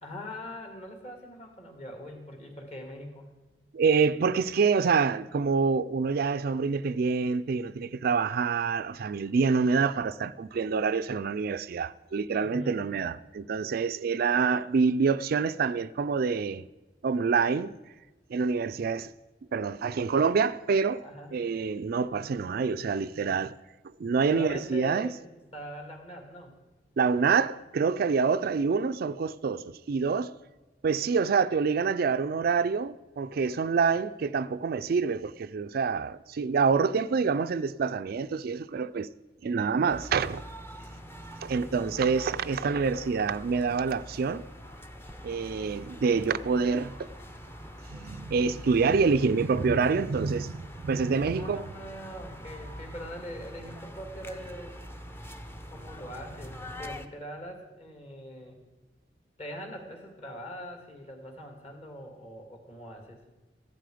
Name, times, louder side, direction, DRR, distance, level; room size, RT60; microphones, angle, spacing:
voice 1, 0.0-3.3 12.4-12.8 21.0-21.3 24.2-26.5 39.7-40.0 41.5-42.1 51.2-54.8 55.6-58.6 59.4-63.2, equal, 40° left, 2.6 m, -42 dB
voice 2, 3.7-16.6 17.0-17.7 18.3-19.1 19.5-21.0 21.3-23.5 24.0-25.1 27.0-30.3 30.8-39.1 39.4-40.4 41.4-44.4 45.2-47.1 47.9-51.7, right 5 dB, 60° right, 0.4 m, -26 dB
sound 1, 39.9-57.1, equal, 15° left, 0.8 m, -44 dB
14.5 x 11.5 x 5.0 m
head